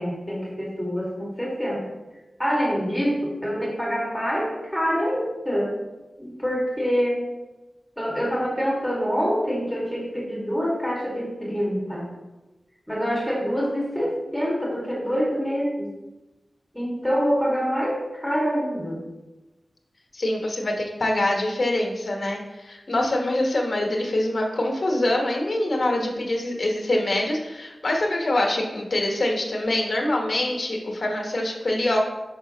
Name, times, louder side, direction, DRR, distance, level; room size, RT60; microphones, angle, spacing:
voice 1, 0.0-1.8 2.4-5.8 6.2-7.2 8.0-12.1 12.9-15.9 16.7-19.0, equal, ahead, -4 dB, 1.8 m, -26 dB
voice 2, 20.1-32.0, left 1 dB, 55° left, 0 dB, 1.2 m, -24 dB
5.7 x 5.7 x 2.9 m, 1.1 s
cardioid pair, 50°, 0 cm